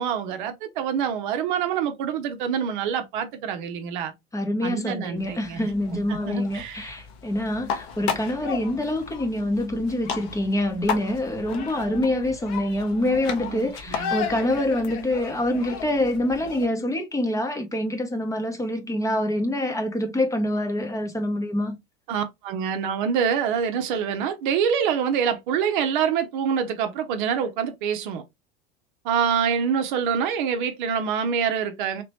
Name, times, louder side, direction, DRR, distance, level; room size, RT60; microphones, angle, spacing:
voice 1, 0.0-4.1 4.6-5.7 6.1-6.9 13.4-14.1 22.1-28.2 29.0-32.0, right 7 dB, 55° right, 0.7 m, -26 dB
voice 2, 4.3-21.8, left 1 dB, 10° left, 0.8 m, -26 dB
sound 1, 5.2-16.7, left 7 dB, 50° left, 0.9 m, -34 dB
3.3 x 3.0 x 2.8 m
figure-of-eight pair, 85°, 31 cm